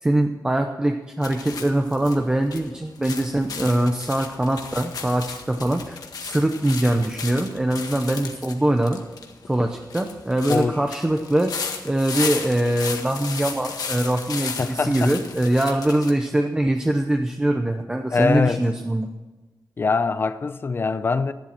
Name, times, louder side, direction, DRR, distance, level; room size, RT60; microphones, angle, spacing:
voice 1, 0.0-9.0 9.5-11.5 11.8-19.1, right 1 dB, 10° right, 0.8 m, -23 dB
sound 1, 1.2-16.1, left 5 dB, 70° left, 1.6 m, -34 dB
voice 2, 10.5-10.8 14.6-15.2 18.1-18.7 19.8-21.3, left 4 dB, 35° left, 0.6 m, -23 dB
14.0 x 11.5 x 6.0 m
wide cardioid pair, 180°, 7 cm